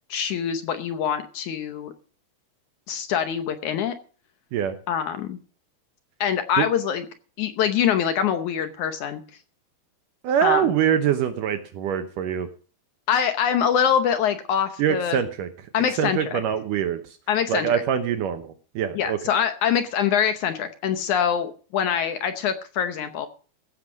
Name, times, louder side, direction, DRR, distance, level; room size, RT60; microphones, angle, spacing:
voice 1, 0.1-1.9 2.9-3.9 4.9-5.4 6.2-7.1 7.4-9.2 10.4-10.7 13.1-15.2 15.7-16.4 17.3-17.8 18.9-23.3, left 8 dB, 70° left, 9 dB, 2.0 m, -24 dB
voice 2, 10.2-12.5 14.8-15.5 16.0-17.2 17.5-19.2, right 9 dB, 70° right, 9 dB, 2.3 m, -24 dB
15.5 x 6.6 x 7.3 m, 0.39 s
omnidirectional pair, 4.3 m